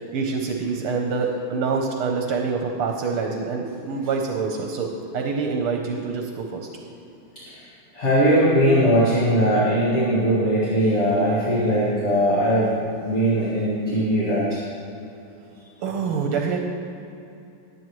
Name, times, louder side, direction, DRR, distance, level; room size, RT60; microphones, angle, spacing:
voice 1, 0.1-6.7 15.8-16.6, right 4 dB, 80° right, 2 dB, 1.7 m, -26 dB
voice 2, 7.9-12.7 13.0-14.6, equal, 35° left, -8 dB, 2.0 m, -20 dB
19.0 x 8.8 x 3.1 m, 2.8 s
omnidirectional pair, 2.4 m